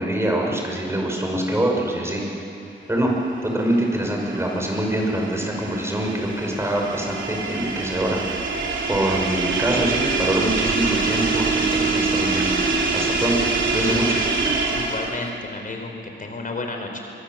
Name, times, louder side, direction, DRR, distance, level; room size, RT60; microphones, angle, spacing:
voice 1, 0.0-2.2 2.9-3.1 3.4-8.2 8.9-12.5 12.9-14.2, right 1 dB, 15° right, -1 dB, 6.0 m, -24 dB
sound 1, 3.4-15.3, right 4 dB, 80° right, 3.2 m, -25 dB
voice 2, 14.7-15.9 16.2-17.0, left 3 dB, 45° left, 3 dB, 4.5 m, -31 dB
23.5 x 21.5 x 7.7 m, 2.7 s
wide cardioid pair, 95°, 19 cm